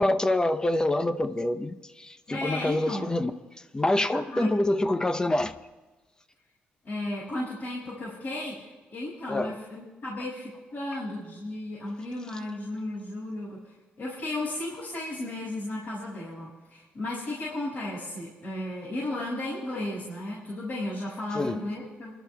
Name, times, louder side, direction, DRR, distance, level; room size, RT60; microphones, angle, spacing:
voice 1, 0.0-3.3 3.7-5.5 9.3-9.6 21.3-21.6, left 1 dB, 20° left, 0.7 m, -26 dB
voice 2, 2.3-3.1 4.1-4.5 6.8-22.1, left 1 dB, 55° left, 5.4 m, -34 dB
30.0 x 12.0 x 2.3 m
supercardioid pair, 65°, 4 cm